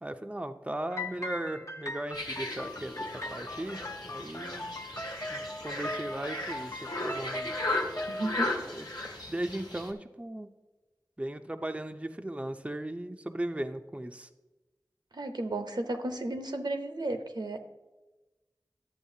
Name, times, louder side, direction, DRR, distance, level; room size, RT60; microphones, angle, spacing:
voice 1, 0.0-2.9 3.3-4.7 5.3-7.5 8.7-8.9 9.3-10.5 11.2-14.3, right 1 dB, 15° right, 6 dB, 0.5 m, -37 dB
sound 1, 0.9-8.3, left 1 dB, 45° left, 0.6 m, -40 dB
sound 2, 2.1-9.9, left 2 dB, 80° left, 1.3 m, -36 dB
voice 2, 8.1-8.7 9.0-9.2 15.1-17.6, right 2 dB, 80° right, 6 dB, 0.7 m, -34 dB
11.5 x 7.6 x 2.7 m, 1.1 s
wide cardioid pair, 45°, 7 cm